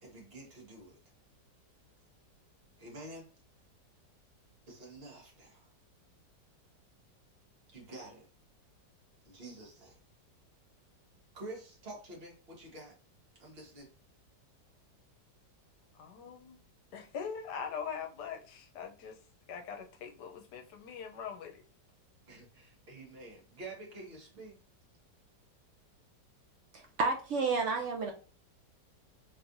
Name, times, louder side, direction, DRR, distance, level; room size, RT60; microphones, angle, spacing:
voice 1, 0.0-1.0 2.8-3.3 4.7-5.7 7.7-8.3 9.2-10.0 11.3-13.0 13.4-13.9 22.3-24.6, right 2 dB, 40° right, 1.3 m, -48 dB
voice 2, 15.9-16.6 16.9-19.2 19.5-21.6, left 6 dB, 75° left, 1.2 m, -42 dB
voice 3, 27.0-28.1, right 4 dB, 75° right, 0.6 m, -30 dB
3.6 x 3.2 x 2.6 m
omnidirectional pair, 1.9 m